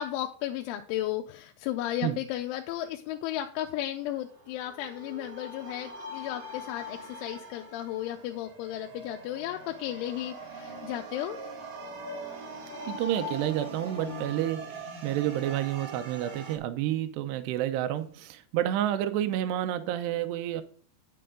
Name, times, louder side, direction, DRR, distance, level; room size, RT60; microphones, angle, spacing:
voice 1, 0.0-11.4, left 13 dB, 85° left, 3.1 m, -34 dB
sound 1, 4.2-16.6, right 1 dB, 55° right, 2.4 m, -42 dB
voice 2, 12.8-20.6, right 12 dB, 80° right, 2.5 m, -30 dB
9.2 x 7.7 x 3.7 m
omnidirectional pair, 5.4 m